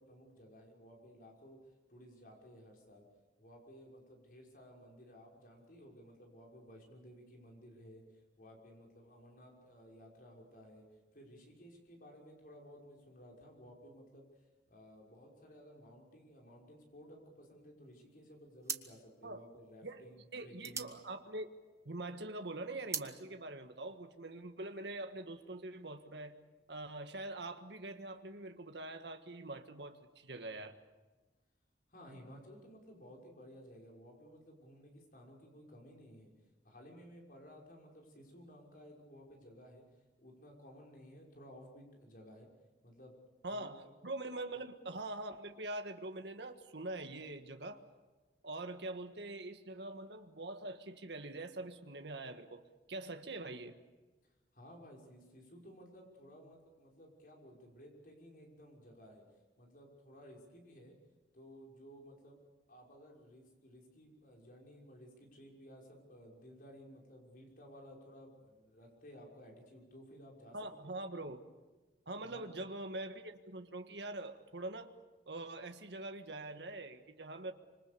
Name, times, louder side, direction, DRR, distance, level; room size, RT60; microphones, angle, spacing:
voice 1, 0.0-1.6 1.9-3.1 3.4-8.0 8.4-10.9 11.1-14.3 14.7-20.9 31.9-36.3 36.6-39.8 40.2-42.5 42.8-43.1 43.5-43.9 44.3-44.4 54.5-59.2 59.6-61.0 61.3-62.4 62.7-70.6 70.8-70.9 72.2-72.5, equal, 50° left, 6.0 m, -56 dB
sound 1, 17.9-18.2 18.6-22.0 22.3-23.2, right 5 dB, 15° right, 1.3 m, -43 dB
voice 2, 20.3-21.5 21.8-26.4 26.7-30.8 43.4-47.8 48.4-52.6 52.9-53.8 70.5-71.4 72.1-74.9 75.3-77.5, right 2 dB, 75° right, 1.7 m, -44 dB
26.0 x 25.5 x 7.0 m
head